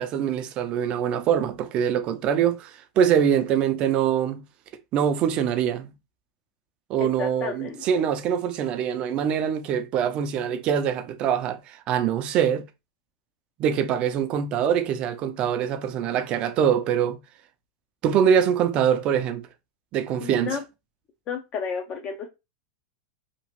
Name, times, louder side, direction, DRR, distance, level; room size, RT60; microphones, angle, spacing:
voice 1, 0.0-4.4 4.9-5.9 6.9-12.6 13.6-17.2 18.0-19.4 19.9-20.6, right 8 dB, 35° right, 0.4 m, -24 dB
voice 2, 7.0-8.0 20.2-20.6 21.3-22.3, left 6 dB, 35° left, 0.5 m, -32 dB
2.9 x 2.4 x 2.9 m
supercardioid pair, 135°, 3 cm